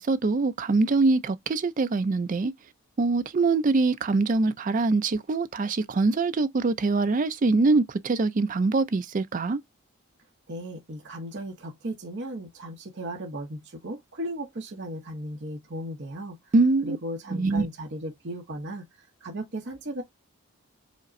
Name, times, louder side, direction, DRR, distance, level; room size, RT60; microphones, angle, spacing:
voice 1, 0.0-2.5 3.0-9.6 16.5-17.0 17.3-17.7, right 3 dB, 40° right, 0.4 m, -23 dB
voice 2, 10.5-16.4 16.8-18.8 19.2-20.0, right 1 dB, 55° right, 0.9 m, -36 dB
5.0 x 2.0 x 2.5 m
head